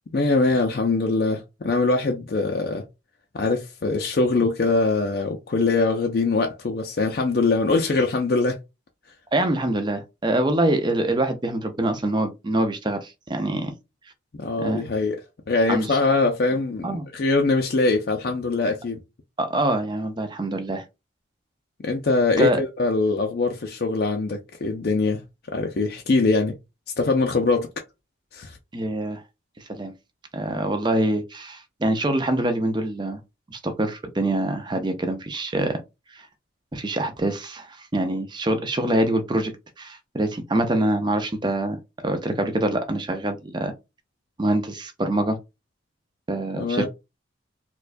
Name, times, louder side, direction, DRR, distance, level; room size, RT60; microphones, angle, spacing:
voice 1, 0.1-2.8 3.3-8.6 14.4-15.2 15.5-19.0 21.8-25.2 25.5-26.5 27.0-27.7 28.3-28.6 46.6-46.9, left 3 dB, 50° left, 0.4 m, -22 dB
voice 2, 9.3-13.7 14.6-14.8 15.7-16.0 16.8-17.1 19.4-20.8 22.4-22.6 28.7-29.2 29.7-29.9 30.3-33.2 33.5-35.8 36.7-41.8 42.0-43.7 44.4-45.4 46.3-46.9, right 1 dB, 25° right, 0.5 m, -25 dB
4.3 x 2.3 x 2.5 m
head